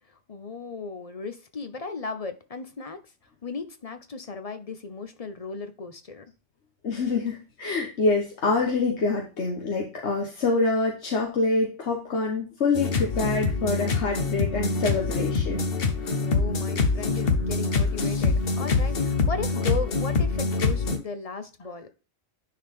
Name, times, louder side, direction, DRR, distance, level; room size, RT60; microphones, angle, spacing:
voice 1, 0.3-3.0 3.4-6.2 16.2-21.9, left 4 dB, 35° left, 9 dB, 0.9 m, -36 dB
voice 2, 6.8-15.7, left 3 dB, 85° left, 1 dB, 1.5 m, -26 dB
sound 1, 12.8-21.0, left 4 dB, 60° left, 1.2 m, -25 dB
9.9 x 4.7 x 3.6 m, 0.33 s
omnidirectional pair, 1.1 m